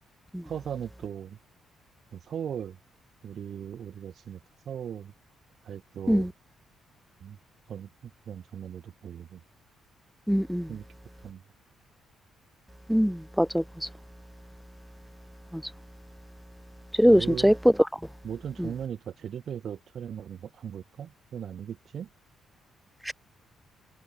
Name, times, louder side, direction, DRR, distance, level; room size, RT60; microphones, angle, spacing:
voice 1, 0.4-1.4 2.1-2.8 3.2-4.4 4.7-5.1 5.6-6.3 7.2-7.4 7.7-9.4 10.7-10.8 11.2-11.4 17.0-17.5 18.2-22.1, right 8 dB, 60° right, 5.3 m, -38 dB
voice 2, 10.3-10.7 12.9-13.6 17.0-17.5 23.1-23.2, equal, ahead, 0.6 m, -21 dB
cardioid pair, 90°, 0 cm